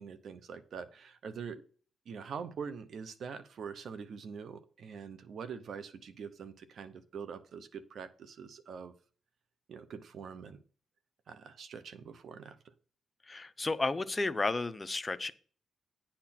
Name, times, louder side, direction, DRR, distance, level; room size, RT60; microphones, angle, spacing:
voice 1, 0.0-1.6 2.1-8.9 9.7-10.6 11.3-12.6, right 6 dB, 65° right, 12 dB, 0.9 m, -44 dB
voice 2, 13.3-15.3, left 3 dB, 25° left, 13 dB, 0.7 m, -32 dB
9.9 x 4.4 x 5.9 m, 0.42 s
cardioid pair, 70°, 0 cm